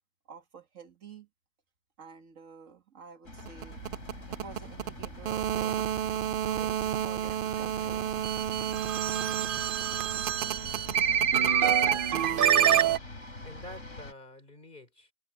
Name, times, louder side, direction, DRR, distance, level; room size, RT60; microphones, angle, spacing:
voice 1, 0.3-1.3 2.0-3.8 4.3-5.7 6.3-8.4, right 5 dB, 85° right, 2.1 m, -49 dB
sound 1, 3.2-14.1, left 2 dB, 75° left, 4.1 m, -45 dB
sound 2, 3.4-13.0, right 9 dB, 60° right, 0.6 m, -27 dB
voice 2, 11.9-12.2 13.4-15.1, left 1 dB, 40° left, 4.4 m, -48 dB
omnidirectional pair, 1.3 m